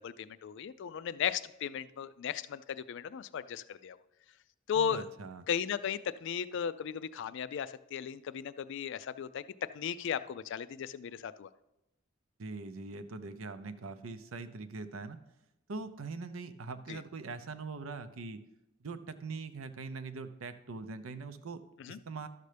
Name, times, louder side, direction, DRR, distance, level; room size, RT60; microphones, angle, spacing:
voice 1, 0.0-4.0 4.7-5.1 5.5-9.4 9.7-11.5 16.9-17.0 21.8-22.0, left 8 dB, 60° left, 15 dB, 0.3 m, -36 dB
voice 2, 4.7-5.4 12.4-15.2 15.7-18.4 18.8-21.6 21.9-22.3, right 3 dB, 90° right, 11 dB, 0.6 m, -42 dB
12.0 x 6.6 x 3.3 m, 0.90 s
head